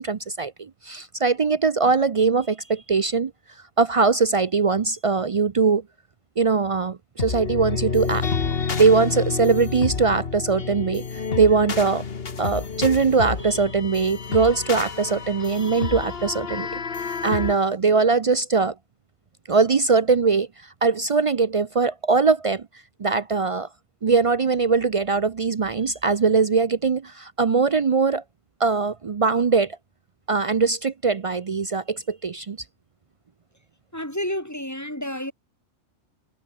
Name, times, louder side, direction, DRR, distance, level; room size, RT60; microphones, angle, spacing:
voice 1, 0.0-3.3 3.8-5.8 6.4-8.3 8.8-12.0 12.4-16.8 17.1-18.7 19.5-22.7 23.0-23.7 24.0-28.2 28.6-29.8 30.3-32.6, right 4 dB, 55° right, 0.3 m, -21 dB
sound 1, 7.2-17.5, left 5 dB, 50° left, 1.6 m, -29 dB
voice 2, 33.9-35.3, left 1 dB, 10° left, 5.0 m, -30 dB
omnidirectional pair, 1.3 m